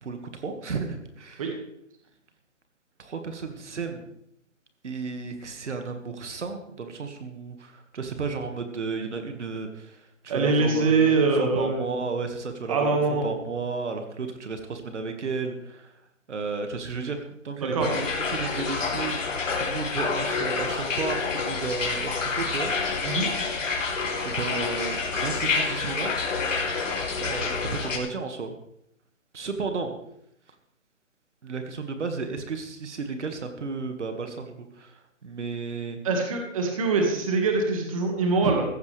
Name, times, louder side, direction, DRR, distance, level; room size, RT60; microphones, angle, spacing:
voice 1, 0.0-1.5 3.0-4.1 4.8-15.9 16.3-23.2 24.2-26.1 27.2-28.5 29.3-30.0 31.4-36.0 38.4-38.6, right 4 dB, 60° right, 6 dB, 1.9 m, -33 dB
voice 2, 10.3-11.8 12.7-13.3 17.6-18.0 23.0-23.3 36.0-38.6, right 3 dB, 25° right, 2 dB, 1.8 m, -23 dB
sound 1, 17.8-28.0, left 4 dB, 70° left, 3.2 m, -28 dB
15.0 x 14.5 x 3.4 m, 0.74 s
hypercardioid pair, 170°, 40 cm